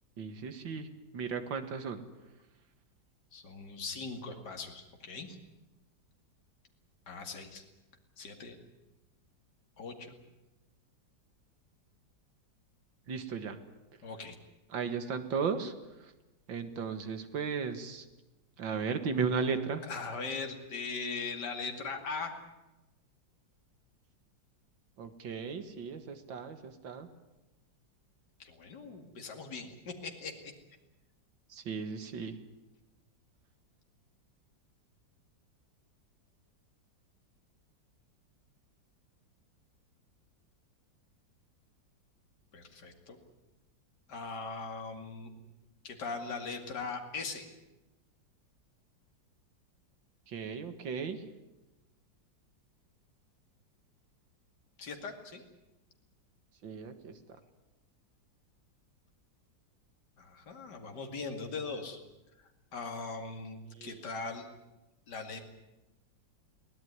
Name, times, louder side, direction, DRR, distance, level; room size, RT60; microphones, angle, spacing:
voice 1, 0.2-0.9 1.1-2.0 13.1-13.6 14.7-15.7 16.0-16.1 16.5-18.1 18.6-19.8 25.0-27.1 31.5-32.4 50.3-51.2 56.6-57.2 63.7-64.0, right 5 dB, 85° right, 9 dB, 2.4 m, -35 dB
voice 2, 3.3-5.4 7.1-7.6 8.2-8.6 9.8-10.1 14.0-14.4 19.8-22.4 28.4-30.5 42.5-43.2 44.1-45.3 45.8-47.5 54.8-55.4 60.2-62.0 62.4-64.5 65.1-65.4, left 4 dB, 65° left, 4 dB, 2.9 m, -40 dB
23.0 x 17.5 x 9.6 m, 1.0 s
omnidirectional pair, 2.0 m